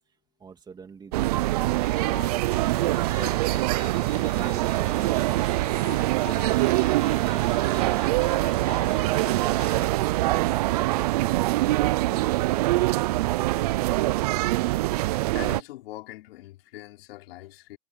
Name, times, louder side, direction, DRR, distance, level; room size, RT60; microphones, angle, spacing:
voice 1, 0.4-3.5, right 6 dB, 10° right, 2.8 m, -45 dB
sound 1, 1.1-15.6, right 18 dB, 35° right, 0.4 m, -24 dB
sound 2, 1.8-9.9, left 10 dB, 20° left, 4.1 m, -44 dB
voice 2, 15.3-17.8, left 16 dB, 60° left, 5.0 m, -42 dB
supercardioid pair, 155°, 34 cm